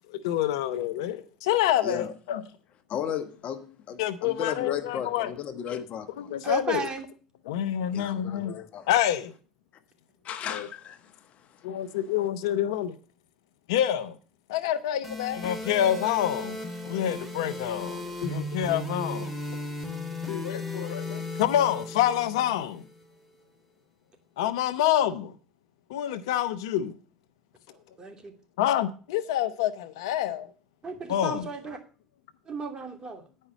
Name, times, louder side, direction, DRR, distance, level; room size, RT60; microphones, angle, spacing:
voice 1, 0.1-2.4 4.0-5.3 6.2-6.9 7.5-8.6 8.9-9.3 10.5-10.7 11.6-13.0 13.7-14.1 14.5-19.3 20.3-22.9 24.4-25.3 25.9-27.0 28.6-30.5 31.1-31.5, left 11 dB, 80° left, 0.8 m, -27 dB
voice 2, 1.8-2.1 2.9-6.3 7.9-8.9 10.2-12.0, left 8 dB, 55° left, 1.1 m, -35 dB
voice 3, 6.4-7.1 28.0-28.3 30.8-31.8 32.5-33.2, right 3 dB, 30° right, 2.6 m, -34 dB
sound 1, 15.0-23.0, left 2 dB, ahead, 2.9 m, -36 dB
9.9 x 5.5 x 7.3 m
hypercardioid pair, 75°, 3 cm